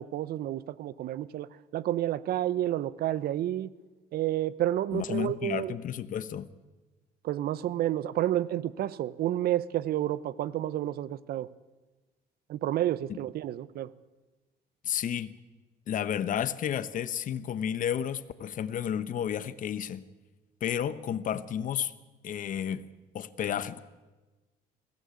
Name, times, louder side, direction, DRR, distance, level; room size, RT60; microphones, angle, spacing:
voice 1, 0.0-1.5 1.7-3.7 4.1-5.8 7.2-11.5 12.5-13.9, right 13 dB, 65° right, 0.8 m, -30 dB
voice 2, 4.9-6.5 14.8-15.4 15.9-20.0 20.6-21.9 22.2-22.9 23.1-23.8, left 9 dB, 50° left, 1.1 m, -32 dB
21.5 x 16.5 x 8.4 m
cardioid pair, 110°, 17 cm